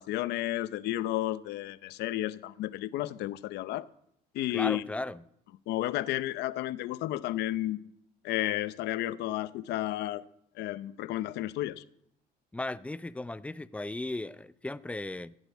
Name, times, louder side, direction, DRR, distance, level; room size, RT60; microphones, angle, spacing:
voice 1, 0.0-3.9 4.3-4.9 5.7-7.8 8.2-10.2 10.6-11.8, left 15 dB, 80° left, 0.7 m, -32 dB
voice 2, 4.5-5.2 12.5-15.3, left 2 dB, 5° left, 0.5 m, -36 dB
15.5 x 8.2 x 8.2 m
cardioid pair, 110°, 17 cm